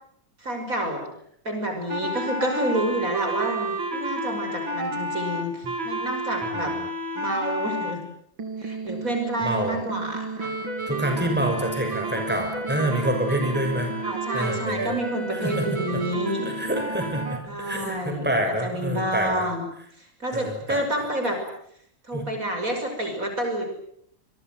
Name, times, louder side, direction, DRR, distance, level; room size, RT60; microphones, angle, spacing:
voice 1, 0.4-1.1 1.4-6.7 7.1-8.0 8.6-10.6 14.0-16.5 17.5-18.3 18.6-19.7 20.2-21.4 22.1-23.7, right 1 dB, 45° right, 5 dB, 6.2 m, -29 dB
sound 1, 1.9-7.9 8.4-17.4, right 2 dB, 80° right, 4.7 m, -31 dB
voice 2, 6.4-6.8 9.4-9.8 10.9-13.9 14.3-14.9 15.3-15.7 15.9-16.0 16.4-19.5 20.3-20.8 22.1-22.2, right 1 dB, 5° right, 4 dB, 6.3 m, -27 dB
27.5 x 23.5 x 7.9 m, 0.69 s
omnidirectional pair, 2.1 m